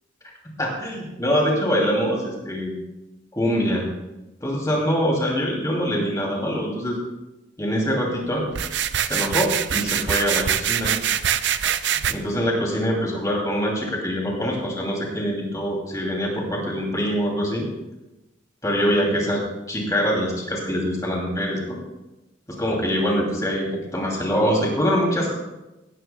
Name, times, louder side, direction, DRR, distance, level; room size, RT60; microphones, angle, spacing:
voice 1, 0.6-2.7 3.3-3.8 4.4-7.0 7.6-8.4 9.1-10.9 12.1-17.6 18.6-19.4 19.7-21.8 22.5-25.4, equal, 20° left, -1 dB, 2.7 m, -24 dB
sound 1, 8.5-12.1, right 9 dB, 65° right, 0.5 m, -24 dB
16.0 x 12.5 x 2.3 m, 1.0 s
head